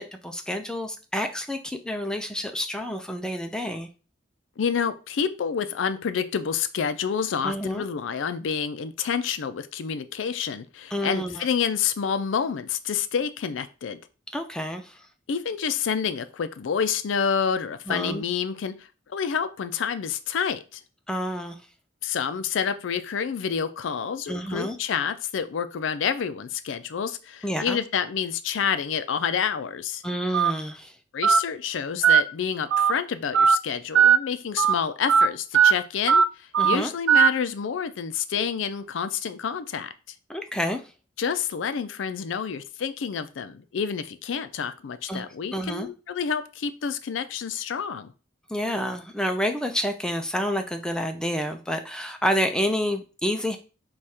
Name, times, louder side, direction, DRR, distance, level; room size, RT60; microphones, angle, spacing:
voice 1, 0.0-3.9 7.4-7.8 10.9-11.5 14.3-15.0 17.9-18.2 21.1-21.6 24.3-24.8 27.4-27.8 30.0-30.9 36.6-36.9 40.3-40.8 45.1-45.9 48.5-53.6, equal, 5° left, 0.4 m, -29 dB
voice 2, 4.6-14.0 15.3-18.7 19.1-20.8 22.0-30.0 31.1-39.9 41.2-48.1, left 7 dB, 80° left, 0.4 m, -28 dB
Telephone, 30.3-30.5 31.2-31.4 32.0-32.2 32.7-32.9 33.3-33.6 33.9-34.2 34.6-34.7 35.1-35.3 35.5-35.7 36.1-36.2 36.5-36.8 37.1-37.3, right 7 dB, 85° right, 0.3 m, -17 dB
4.8 x 2.3 x 4.2 m
head